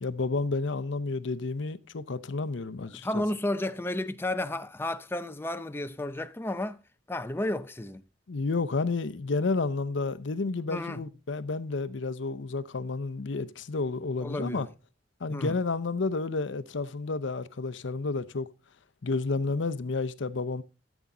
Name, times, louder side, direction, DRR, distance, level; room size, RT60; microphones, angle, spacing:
voice 1, 0.0-3.2 8.3-14.7 15.2-18.5 19.0-20.6, left 3 dB, 75° left, 0.7 m, -31 dB
voice 2, 3.0-6.8 7.1-8.0 10.7-11.0 14.2-14.7 15.3-15.6, left 1 dB, 10° left, 0.5 m, -32 dB
13.5 x 7.2 x 3.7 m
head